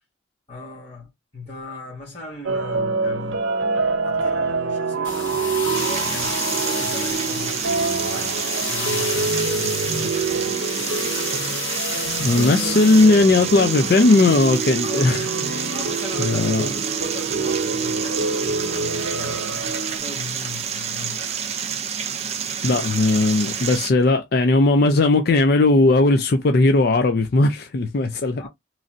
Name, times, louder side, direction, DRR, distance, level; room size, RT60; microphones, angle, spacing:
voice 1, 0.5-3.5 4.0-10.7 12.3-12.9 14.8-15.2 15.7-21.2 28.4-28.5, left 3 dB, 35° left, 1.3 m, -38 dB
sound 1, 2.4-20.0, right 4 dB, 80° right, 0.6 m, -26 dB
sound 2, 5.0-13.1, left 6 dB, 85° left, 1.2 m, -31 dB
sound 3, 5.7-23.9, right 7 dB, 30° right, 0.4 m, -29 dB
voice 2, 12.2-15.7 16.2-16.7 22.6-28.4, left 2 dB, 50° left, 0.4 m, -17 dB
3.1 x 2.5 x 2.5 m
head